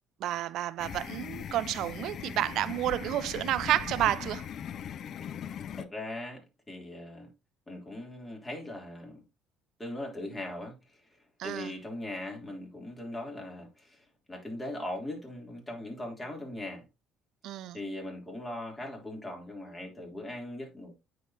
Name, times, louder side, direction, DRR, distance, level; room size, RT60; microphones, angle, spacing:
voice 1, 0.2-4.5 11.4-11.7 17.4-17.8, right 13 dB, 70° right, 0.4 m, -30 dB
sound 1, 0.8-5.8, left 9 dB, 55° left, 0.5 m, -40 dB
voice 2, 5.2-7.3 7.7-9.2 9.8-16.9 17.7-20.9, left 1 dB, 20° left, 3.3 m, -40 dB
9.1 x 4.8 x 2.8 m
supercardioid pair, 75°, 0 cm